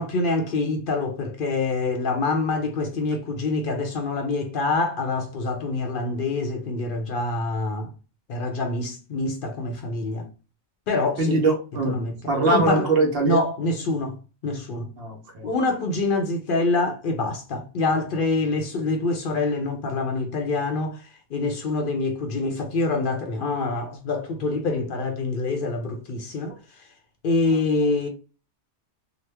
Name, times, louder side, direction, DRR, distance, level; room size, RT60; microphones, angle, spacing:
voice 1, 0.0-7.9 8.3-10.3 10.9-11.4 11.8-12.2 12.5-12.9 13.2-14.2 14.4-14.9 15.4-26.6 27.2-28.1, left 3 dB, 60° left, 0.7 m, -25 dB
voice 2, 11.2-12.0 12.3-13.4 15.0-15.5, right 3 dB, 65° right, 1.0 m, -22 dB
2.9 x 2.1 x 3.3 m
omnidirectional pair, 1.1 m